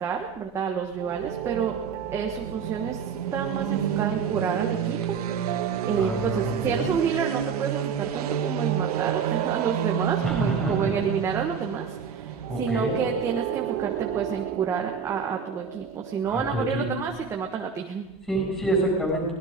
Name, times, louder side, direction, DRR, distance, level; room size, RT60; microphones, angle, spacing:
voice 1, 0.0-1.8 2.1-3.0 3.3-18.1, right 7 dB, 15° right, 2 dB, 1.4 m, -29 dB
sound 1, 0.9-14.8, right 10 dB, 75° right, 2.3 m, -31 dB
sound 2, 1.0-3.5 5.1-7.0 8.4-11.1 12.4-17.0, right 16 dB, 30° right, 0.7 m, -35 dB
voice 2, 6.0-6.9 10.2-10.9 12.5-13.0 16.3-16.9 18.3-19.3, right 1 dB, 5° left, -1 dB, 6.9 m, -27 dB
24.5 x 20.5 x 5.2 m, 0.92 s
supercardioid pair, 175°, 20 cm